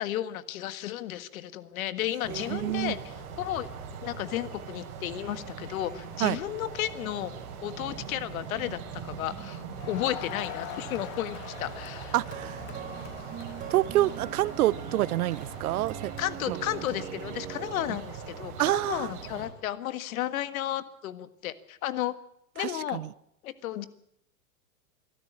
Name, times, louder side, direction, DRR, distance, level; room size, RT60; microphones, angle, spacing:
voice 1, 0.0-3.7 4.0-7.3 7.6-12.1 16.2-22.1 22.5-23.0 23.4-23.9, left 13 dB, 65° left, 1.7 m, -33 dB
sound 1, 2.2-19.5, right 6 dB, 45° right, 5.8 m, -41 dB
voice 2, 2.3-2.9 6.2-6.4 12.1-12.6 13.7-16.1 16.5-16.6 18.6-19.1 22.6-23.1, right 15 dB, 70° right, 0.8 m, -27 dB
Crowd, 9.7-16.3, left 11 dB, 45° left, 2.3 m, -44 dB
sound 2, 12.1-18.0, right 10 dB, 15° right, 0.7 m, -42 dB
24.0 x 13.0 x 8.7 m
hypercardioid pair, 140°, 45 cm